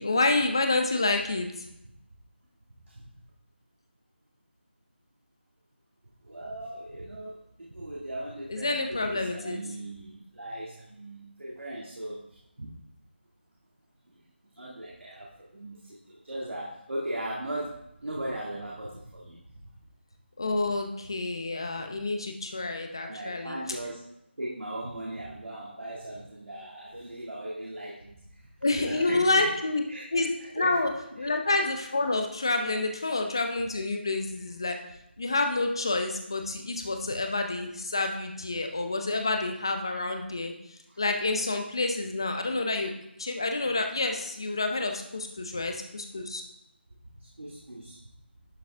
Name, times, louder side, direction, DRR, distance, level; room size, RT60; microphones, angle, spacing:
voice 1, 0.0-1.6 8.5-9.6 20.4-23.6 28.6-29.8 30.1-30.3 30.5-30.9 31.2-34.8 35.2-40.5 41.0-42.9 43.2-46.4, left 2 dB, 25° left, 5 dB, 0.6 m, -28 dB
voice 2, 6.2-12.2 12.6-12.7 14.6-15.8 16.0-19.4 23.0-24.0 24.4-28.2 28.8-29.5 29.9-30.1 30.6-31.4 37.0-37.1 40.9-41.0 45.5-45.6 47.2-48.0, right 1 dB, 85° right, -4 dB, 1.9 m, -38 dB
11.0 x 5.3 x 3.4 m, 0.80 s
figure-of-eight pair, 180°, 6 cm